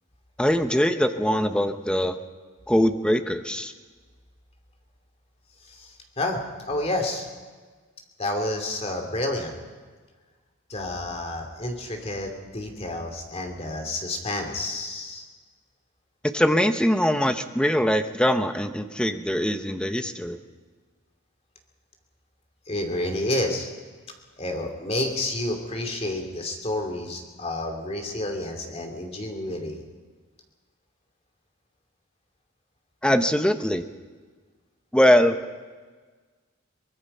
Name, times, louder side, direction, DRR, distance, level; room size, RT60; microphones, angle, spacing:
voice 1, 0.4-2.2 2.7-3.7 16.2-20.4 33.0-33.8 34.9-35.4, equal, 5° left, 8 dB, 0.9 m, -22 dB
voice 2, 5.6-6.4 6.7-7.3 8.2-9.6 10.7-15.3 22.7-23.7 24.4-29.8, left 1 dB, 30° left, 4 dB, 2.8 m, -30 dB
23.5 x 20.0 x 5.6 m, 1.4 s
head